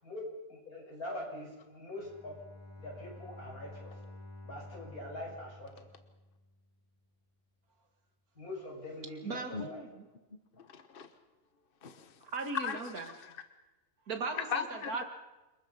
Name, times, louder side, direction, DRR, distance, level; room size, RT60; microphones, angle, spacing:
voice 1, 0.0-2.4 2.8-4.0 4.4-5.9 8.3-9.9, left 1 dB, 75° left, -1 dB, 6.7 m, -43 dB
Bowed string instrument, 2.0-6.7, left 2 dB, 15° right, 2.7 m, -50 dB
voice 2, 9.2-10.1 12.2-13.1 14.1-15.0, right 3 dB, 75° right, 5 dB, 2.6 m, -38 dB
voice 3, 10.6-11.1 11.8-12.1 12.6-13.4 14.3-15.0, left 6 dB, 40° left, 8 dB, 1.3 m, -38 dB
28.5 x 20.5 x 5.4 m, 1.1 s
omnidirectional pair, 1.6 m